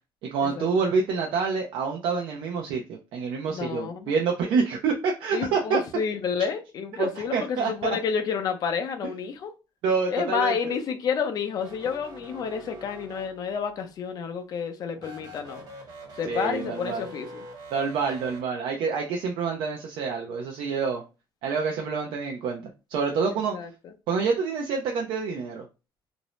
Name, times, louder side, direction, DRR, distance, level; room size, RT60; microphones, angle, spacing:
voice 1, 0.2-5.8 6.9-8.0 9.8-10.8 16.2-17.1 17.7-21.0 21.4-23.5 24.1-25.6, right 5 dB, 75° right, 0.4 m, -27 dB
voice 2, 3.5-4.1 5.3-9.5 10.1-15.6 16.2-17.4 23.5-23.7, left 6 dB, 50° left, 0.5 m, -30 dB
sound 1, 11.5-13.7 15.0-18.4, right 1 dB, 55° right, 1.0 m, -44 dB
2.5 x 2.0 x 3.0 m
cardioid pair, 130°, 9 cm